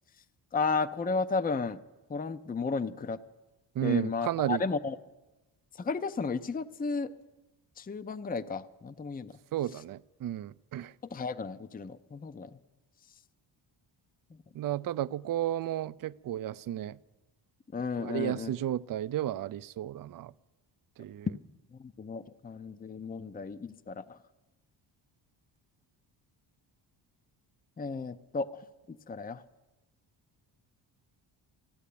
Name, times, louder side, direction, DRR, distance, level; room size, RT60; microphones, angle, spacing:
voice 1, 0.5-1.8 2.1-3.2 3.8-5.0 5.8-7.1 7.8-9.3 11.1-12.5 14.3-14.4 17.7-18.5 21.7-24.2 27.8-28.6 29.1-29.4, left 4 dB, 20° left, 13 dB, 0.6 m, -33 dB
voice 2, 3.8-4.6 9.5-10.9 14.5-17.0 18.0-20.3 21.0-21.3, right 12 dB, 45° right, 15 dB, 0.5 m, -33 dB
14.5 x 11.5 x 8.5 m, 1.1 s
cardioid pair, 70°, 48 cm